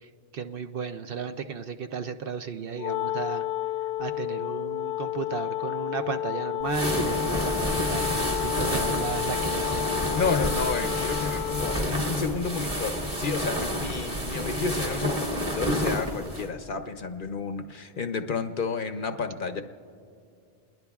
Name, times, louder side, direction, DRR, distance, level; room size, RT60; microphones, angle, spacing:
voice 1, 0.3-3.4 4.0-10.0, right 6 dB, 60° right, 8 dB, 0.7 m, -34 dB
Wind instrument woodwind instrument, 2.8-12.0, left 15 dB, 80° left, 0.9 m, -31 dB
sound 1, 6.7-16.5, equal, 30° right, 2.1 m, -29 dB
voice 2, 10.1-19.6, left 5 dB, 55° left, 8 dB, 0.7 m, -31 dB
28.5 x 21.5 x 2.4 m, 2.4 s
omnidirectional pair, 1.2 m